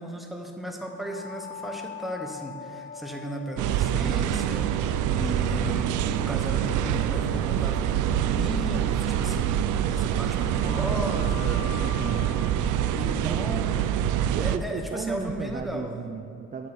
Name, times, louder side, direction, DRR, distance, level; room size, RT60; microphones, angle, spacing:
voice 1, 0.0-11.8 13.0-13.8 14.4-16.0, equal, ahead, 2 dB, 1.0 m, -35 dB
sound 1, 0.8-9.6 10.5-15.2, left 6 dB, 40° left, 1.0 m, -44 dB
sound 2, 3.6-14.6, right 10 dB, 80° right, 0.4 m, -26 dB
sound 3, 4.5-15.7, left 5 dB, 70° left, 0.8 m, -44 dB
voice 2, 10.6-12.5 13.2-13.5 14.3-16.7, right 6 dB, 30° right, 6 dB, 0.4 m, -35 dB
9.1 x 8.1 x 4.2 m, 2.4 s
cardioid pair, 90°, 30 cm